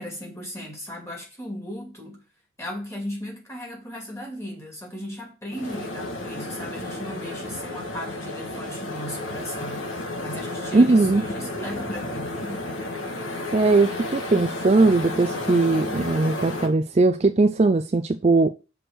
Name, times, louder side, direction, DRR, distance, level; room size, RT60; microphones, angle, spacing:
voice 1, 0.0-2.2 2.6-9.8 10.2-12.7, equal, 15° left, 2.5 m, -36 dB
sound 1, 5.5-16.7, left 2 dB, 70° left, 1.6 m, -32 dB
voice 2, 10.7-11.2 13.5-18.5, right 3 dB, 30° right, 0.4 m, -19 dB
6.1 x 5.0 x 6.3 m
head